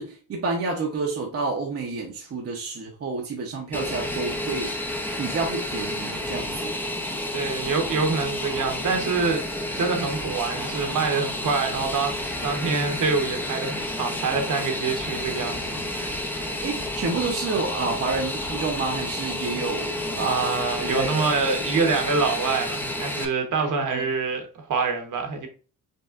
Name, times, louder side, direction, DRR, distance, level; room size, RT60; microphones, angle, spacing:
voice 1, 0.0-4.7 5.2-6.7 16.6-20.5 20.8-21.3 23.6-24.1, right 3 dB, 40° right, 0.8 m, -29 dB
Fixed-wing aircraft airplane, 3.7-23.2, left 1 dB, 5° left, 0.6 m, -30 dB
voice 2, 7.3-9.4 9.8-15.6 15.9-16.2 20.1-25.5, right 4 dB, 55° right, 1.1 m, -26 dB
5.4 x 3.0 x 2.4 m
wide cardioid pair, 160°, 37 cm